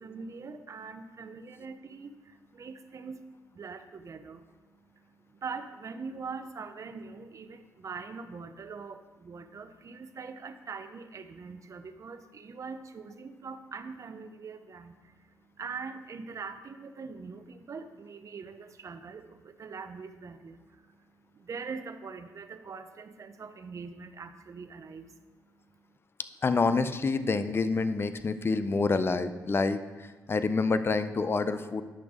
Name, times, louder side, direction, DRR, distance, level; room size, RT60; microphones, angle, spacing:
voice 1, 0.0-25.3 25.6-25.7, right 5 dB, 50° right, 10 dB, 0.7 m, -43 dB
voice 2, 26.4-29.8 30.3-31.8, left 4 dB, 35° left, 11 dB, 0.6 m, -27 dB
10.5 x 6.0 x 3.6 m, 1.3 s
cardioid pair, 60°, 7 cm